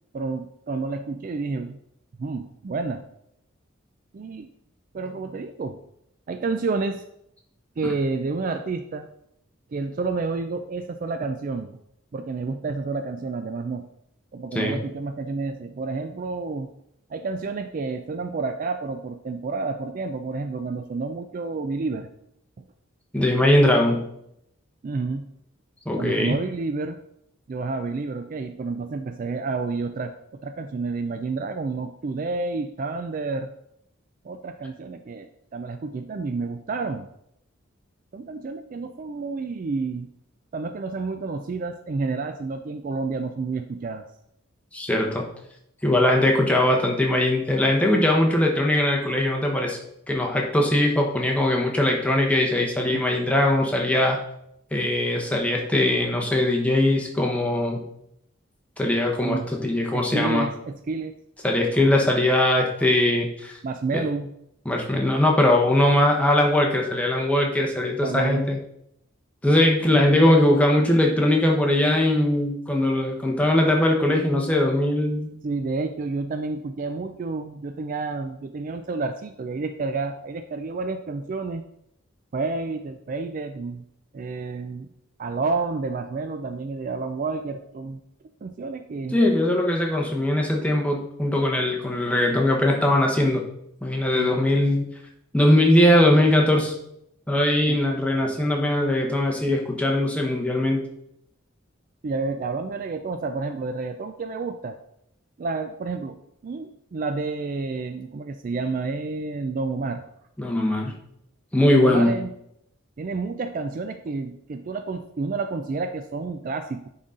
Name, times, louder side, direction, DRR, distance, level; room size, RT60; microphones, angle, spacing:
voice 1, 0.1-1.8 2.2-3.0 4.1-4.5 4.9-5.8 6.3-7.0 7.8-9.1 9.7-11.7 12.1-13.9 14.3-16.7 17.1-22.1 22.6-22.7 24.8-25.3 26.0-27.0 27.5-33.5 34.2-37.1 38.1-40.1 40.5-44.1 52.9-53.1 59.2-59.5 59.9-61.2 63.6-64.3 68.0-68.5 69.9-70.0 75.4-81.6 82.3-83.8 84.1-84.9 85.2-88.0 88.4-89.2 94.1-94.4 97.7-97.8 102.0-104.8 105.4-110.0 111.7-112.3 113.0-116.9, right 3 dB, 40° right, 8 dB, 0.3 m, -30 dB
voice 2, 23.1-24.0 25.8-26.4 44.7-45.3 45.8-49.8 50.1-54.2 54.7-57.8 58.8-60.4 61.4-63.6 63.9-64.0 64.7-68.6 69.4-75.3 89.1-93.4 93.8-94.8 95.3-96.7 97.3-100.8 110.4-110.9 111.5-112.2, left 1 dB, 5° left, 0 dB, 1.0 m, -20 dB
9.8 x 3.9 x 3.7 m, 0.77 s
head